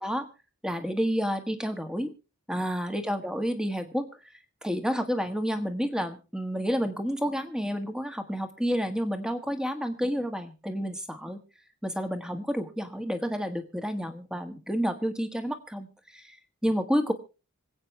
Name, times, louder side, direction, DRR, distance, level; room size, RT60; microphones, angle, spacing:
voice 1, 0.6-2.1 2.5-4.1 4.6-11.4 11.8-15.9 16.1-16.4 16.6-17.1, equal, 5° right, 7 dB, 1.5 m, -30 dB
26.0 x 8.6 x 3.2 m, 0.32 s
head